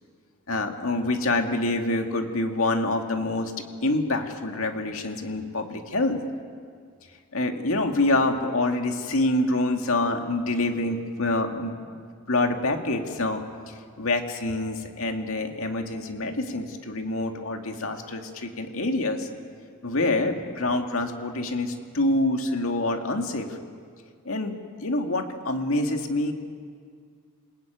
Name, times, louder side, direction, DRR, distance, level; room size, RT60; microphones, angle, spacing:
voice 1, 0.5-3.5 3.8-6.2 7.3-12.0 12.3-19.3 19.8-23.6 24.2-24.5 24.8-26.3, left 2 dB, 65° left, 4 dB, 2.3 m, -26 dB
28.0 x 20.0 x 9.3 m, 2.1 s
head